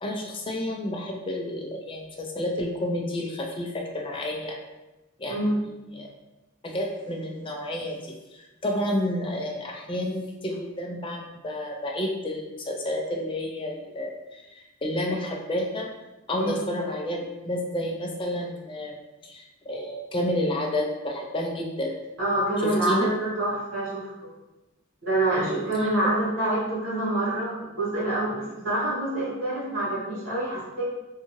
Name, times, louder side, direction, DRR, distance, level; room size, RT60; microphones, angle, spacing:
voice 1, 0.0-4.6 5.2-5.4 5.9-6.1 6.6-15.9 16.3-21.9 22.6-23.1 25.4-25.7, left 1 dB, 25° left, 0 dB, 0.4 m, -30 dB
voice 2, 5.3-5.6 16.4-16.6 22.2-24.1 25.0-30.8, right 1 dB, 80° right, -8 dB, 1.4 m, -26 dB
2.6 x 2.3 x 2.9 m, 1.0 s
head